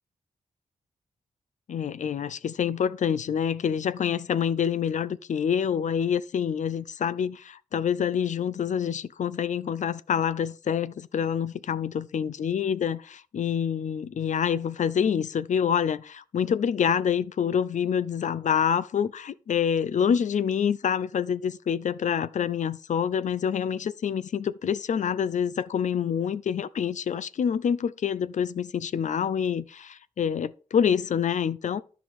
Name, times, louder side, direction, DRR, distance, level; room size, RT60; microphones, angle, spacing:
voice 1, 1.7-31.8, left 8 dB, 65° left, 0.5 m, -27 dB
12.5 x 5.2 x 3.6 m
wide cardioid pair, 140°, 14 cm